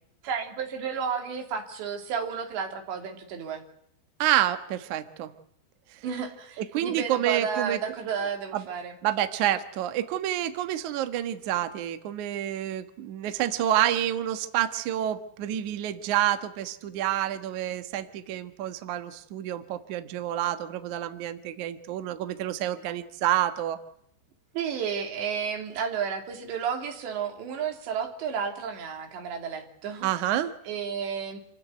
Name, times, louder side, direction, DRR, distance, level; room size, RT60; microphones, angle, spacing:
voice 1, 0.2-3.6 6.0-9.0 24.5-30.1 30.7-31.4, right 7 dB, 60° right, 4 dB, 5.0 m, -32 dB
voice 2, 4.2-5.3 6.6-7.8 8.5-8.6 9.0-23.8 30.0-30.5, right 12 dB, 85° right, 9 dB, 1.7 m, -28 dB
28.0 x 15.5 x 9.4 m, 0.74 s
omnidirectional pair, 5.9 m